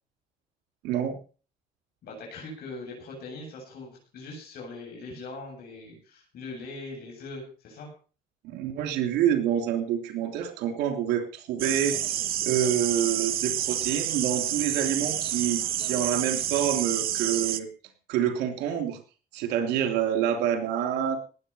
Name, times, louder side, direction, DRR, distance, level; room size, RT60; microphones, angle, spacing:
voice 1, 0.8-1.1 8.4-12.0 12.4-17.7 18.1-19.0 19.3-21.2, right 9 dB, 85° right, 6 dB, 3.3 m, -27 dB
voice 2, 2.0-7.9, left 3 dB, 65° left, -1 dB, 7.8 m, -41 dB
sound 1, 11.6-17.6, right 12 dB, 60° right, 1.1 m, -29 dB
18.5 x 8.5 x 5.7 m, 0.38 s
cardioid pair, 110°, 17 cm